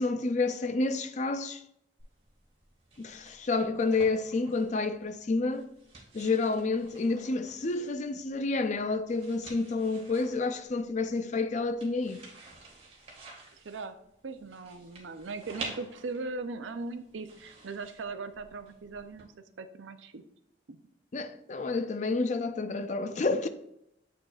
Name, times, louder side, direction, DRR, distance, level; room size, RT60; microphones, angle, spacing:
voice 1, 0.0-1.6 3.0-5.7 6.1-12.2 21.1-23.5, left 3 dB, 40° left, 0.4 m, -29 dB
sound 1, 2.0-19.2, right 3 dB, 30° right, 1.7 m, -50 dB
voice 2, 13.5-14.0 14.2-19.3 19.6-20.2 20.7-20.8, right 3 dB, 75° right, 0.6 m, -39 dB
8.0 x 6.1 x 2.4 m
head